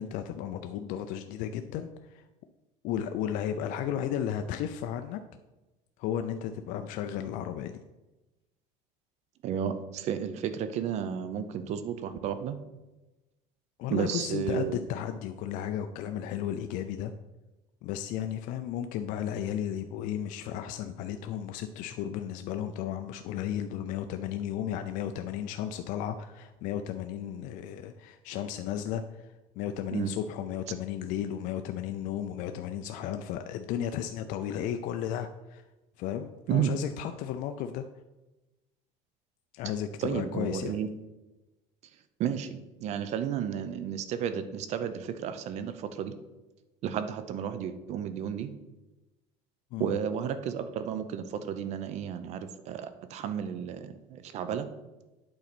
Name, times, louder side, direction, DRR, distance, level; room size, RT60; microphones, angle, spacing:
voice 1, 0.0-2.2 2.8-5.2 6.0-7.8 13.8-17.1 17.8-29.3 29.6-35.6 36.0-37.8 39.5-40.8 49.7-50.0, left 10 dB, 60° left, 7 dB, 0.5 m, -34 dB
voice 2, 9.4-12.6 13.9-14.8 29.9-30.1 36.5-36.7 40.0-40.9 42.2-46.1 46.8-48.5 49.8-54.7, right 8 dB, 45° right, 11 dB, 0.6 m, -32 dB
8.7 x 3.9 x 6.0 m, 1.1 s
cardioid pair, 145°, 16 cm